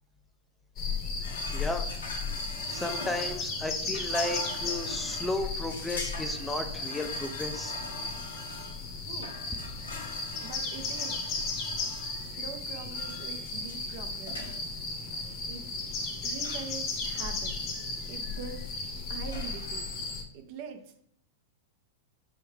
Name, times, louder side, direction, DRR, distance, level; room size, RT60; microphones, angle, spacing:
sound 1, 0.8-20.2, left 3 dB, 40° left, 0.9 m, -35 dB
sound 2, 1.2-20.2, left 2 dB, 90° left, 1.2 m, -43 dB
voice 1, 1.5-1.8 2.7-7.7, left 2 dB, 10° left, 6 dB, 0.5 m, -34 dB
voice 2, 10.4-11.4 12.2-14.4 15.5-15.6 16.2-17.5 18.1-18.7 19.1-19.8 20.3-20.9, right 6 dB, 55° right, 5 dB, 0.8 m, -43 dB
4.6 x 3.4 x 3.2 m, 0.68 s
hypercardioid pair, 110°, 0 cm